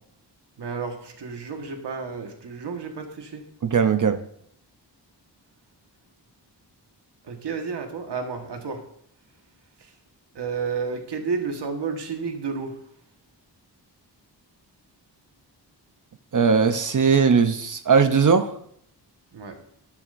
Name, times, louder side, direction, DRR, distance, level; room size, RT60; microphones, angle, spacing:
voice 1, 0.6-3.4 7.2-8.8 9.8-9.9 10.3-12.7 19.3-19.6, right 5 dB, 70° right, 1.5 m, -31 dB
voice 2, 3.6-4.2 16.3-18.5, right 6 dB, 45° right, 0.7 m, -19 dB
12.5 x 11.0 x 2.6 m
wide cardioid pair, 110°, 42 cm